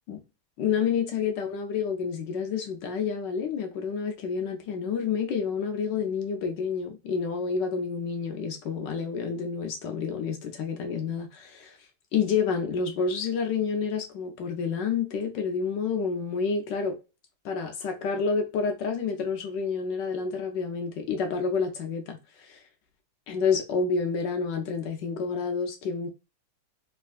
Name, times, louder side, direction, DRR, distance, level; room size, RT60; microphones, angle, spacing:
voice 1, 0.6-11.8 12.1-17.0 17.4-22.6 23.3-26.1, left 5 dB, 75° left, 1.1 m, -29 dB
3.5 x 3.2 x 2.3 m
omnidirectional pair, 2.4 m